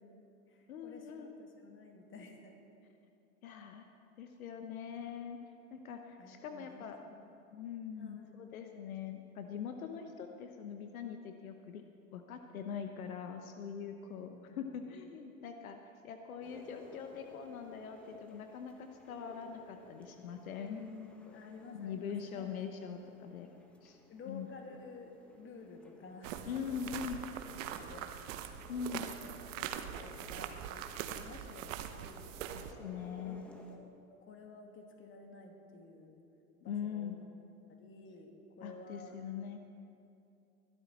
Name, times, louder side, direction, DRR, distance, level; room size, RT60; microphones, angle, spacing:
voice 1, 0.0-2.6 4.6-4.8 6.2-7.1 8.0-8.5 14.2-14.6 20.6-22.9 24.1-26.8 27.8-28.2 29.2-29.3 29.6-32.4 33.2-33.8 34.2-36.1 36.6-37.1 37.7-39.2, left 3 dB, 30° left, 3 dB, 2.3 m, -52 dB
voice 2, 0.7-1.3 3.4-3.9 4.2-5.4 5.7-7.0 7.5-11.8 12.1-15.8 16.0-20.8 21.3-21.4 21.7-23.5 23.8-24.0 24.3-24.5 26.4-27.2 28.7-29.1 32.5-33.4 36.7-37.2 38.6-39.6, left 7 dB, 75° left, 6 dB, 1.1 m, -42 dB
sound 1, 16.4-33.8, equal, 5° left, 1.5 m, -58 dB
sound 2, 26.2-32.7, right 9 dB, 60° right, 1.0 m, -43 dB
21.0 x 12.0 x 4.2 m, 2.7 s
hypercardioid pair, 95°, 43 cm